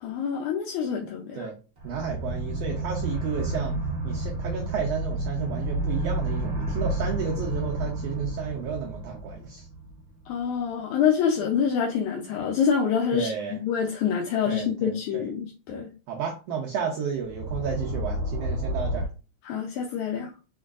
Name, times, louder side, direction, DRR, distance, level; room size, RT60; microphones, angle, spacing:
voice 1, 0.0-1.5 10.3-15.9 19.4-20.3, left 7 dB, 80° left, 2.0 m, -26 dB
sound 1, 1.8-10.3 17.3-19.1, right 1 dB, 45° right, 1.2 m, -30 dB
voice 2, 1.8-3.8 4.0-9.7 13.1-13.6 14.5-15.2 16.1-19.1, right 6 dB, 75° right, 1.6 m, -32 dB
4.6 x 4.4 x 2.4 m
omnidirectional pair, 3.5 m